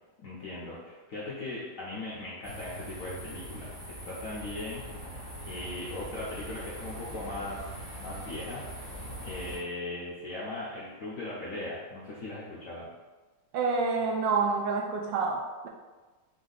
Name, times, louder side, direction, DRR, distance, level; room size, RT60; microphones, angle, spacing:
voice 1, 0.2-4.8 5.4-7.7 8.0-8.7 9.2-12.9, left 2 dB, 65° left, -6 dB, 0.8 m, -38 dB
sound 1, 2.4-9.6, right 1 dB, 25° right, 1.3 m, -42 dB
voice 2, 13.5-15.7, right 4 dB, 75° right, 1 dB, 1.2 m, -28 dB
4.2 x 2.7 x 3.9 m, 1.3 s
omnidirectional pair, 2.2 m